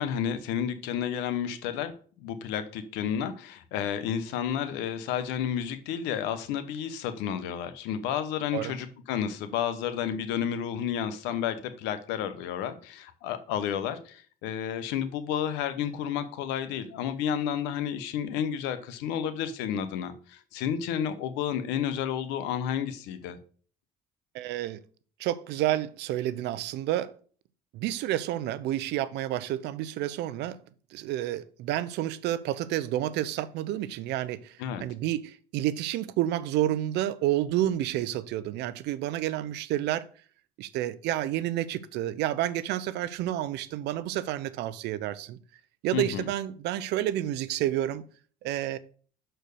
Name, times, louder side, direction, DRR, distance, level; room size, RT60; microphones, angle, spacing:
voice 1, 0.0-1.9 2.2-23.4 34.6-34.8 45.9-46.3, left 9 dB, 90° left, 1.0 m, -31 dB
voice 2, 24.3-24.8 25.2-27.1 27.7-30.6 30.9-40.1 40.6-45.4 45.8-48.0 48.4-48.8, right 13 dB, 75° right, 0.7 m, -30 dB
6.8 x 4.5 x 6.5 m
cardioid pair, 95°, 17 cm